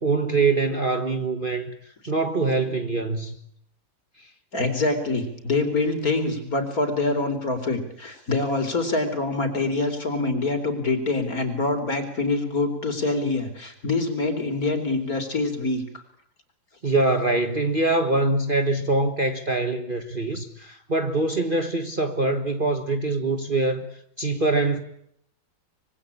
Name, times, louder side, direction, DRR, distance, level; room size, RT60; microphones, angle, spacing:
voice 1, 0.0-1.7 2.1-3.3 4.2-4.3 16.8-23.9 24.2-24.8, right 2 dB, 30° right, 1.6 m, -24 dB
voice 2, 4.5-16.0, left 3 dB, 50° left, 4.4 m, -25 dB
25.5 x 23.5 x 8.7 m
omnidirectional pair, 2.1 m